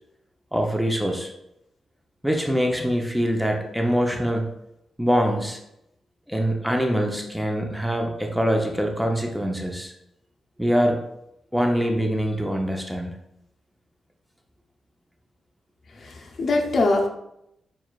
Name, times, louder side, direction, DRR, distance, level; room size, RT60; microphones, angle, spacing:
voice 1, 0.5-1.3 2.2-4.5 5.0-5.6 6.3-9.9 10.6-11.0 11.5-13.1, equal, ahead, 2 dB, 0.6 m, -24 dB
voice 2, 16.0-17.1, left 2 dB, 55° left, 2 dB, 0.6 m, -22 dB
6.2 x 2.3 x 2.4 m, 0.82 s
cardioid pair, 75°, 0 cm